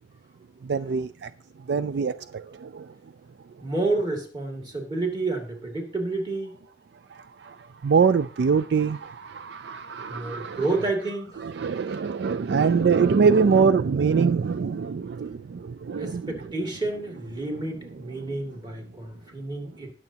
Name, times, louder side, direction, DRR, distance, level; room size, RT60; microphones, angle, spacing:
voice 1, 0.6-1.3 1.7-2.9 7.1-10.7 11.4-16.3 18.3-18.4, right 5 dB, 65° right, 0.4 m, -24 dB
voice 2, 3.6-6.6 10.1-11.4 16.0-19.9, right 2 dB, 25° right, 2.3 m, -30 dB
20.0 x 7.1 x 2.9 m
head